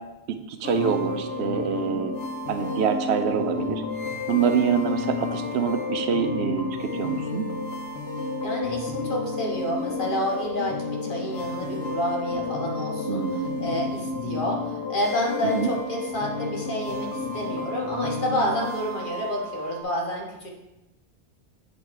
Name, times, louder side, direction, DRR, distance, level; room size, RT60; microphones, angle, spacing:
voice 1, 0.5-3.8 4.3-7.4 13.1-13.6 15.4-15.7, right 6 dB, 80° right, 8 dB, 0.9 m, -26 dB
sound 1, 0.6-19.8, left 3 dB, 75° left, 1.1 m, -31 dB
voice 2, 8.4-20.5, equal, 50° left, -2 dB, 1.3 m, -29 dB
8.2 x 3.1 x 4.6 m, 0.95 s
omnidirectional pair, 1.1 m